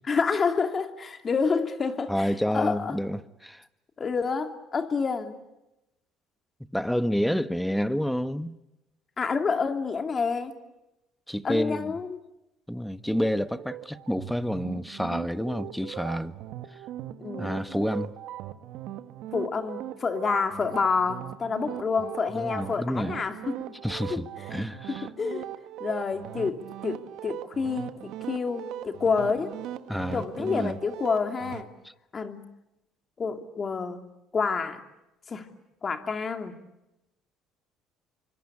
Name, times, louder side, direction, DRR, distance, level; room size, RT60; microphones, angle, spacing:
voice 1, 0.1-3.0 4.0-5.4 9.2-10.6 11.4-12.2 17.2-17.6 19.3-23.7 24.1-24.2 24.9-25.5 25.8-29.6 30.1-31.7 32.1-32.4 33.2-34.0 34.3-34.8 35.3-35.5 35.8-36.5, left 5 dB, 35° left, 2.9 m, -28 dB
voice 2, 2.1-3.6 6.7-8.6 11.3-11.9 12.7-16.4 17.4-18.1 22.3-23.2 23.8-25.1 29.9-30.8, equal, 5° left, 1.3 m, -29 dB
sound 1, 13.0-31.6, right 12 dB, 70° right, 1.5 m, -40 dB
27.0 x 24.5 x 8.6 m
supercardioid pair, 85°, 0 cm